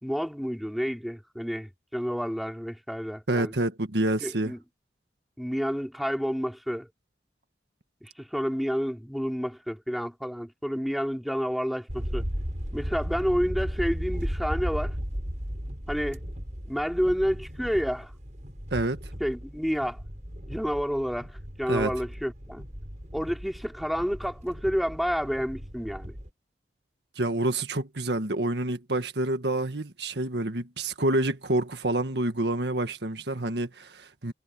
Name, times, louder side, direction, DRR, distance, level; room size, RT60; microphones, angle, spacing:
voice 1, 0.0-3.5 4.2-4.6 5.4-6.9 8.0-12.2 12.7-15.0 15.9-16.3 16.7-18.1 19.2-20.0 20.5-22.6 23.1-26.2, equal, ahead, 3.6 m, -29 dB
voice 2, 3.3-4.5 18.7-19.0 21.7-21.9 27.1-34.3, right 2 dB, 75° right, 1.7 m, -28 dB
sound 1, 11.9-26.3, equal, 45° right, 7.7 m, -36 dB
head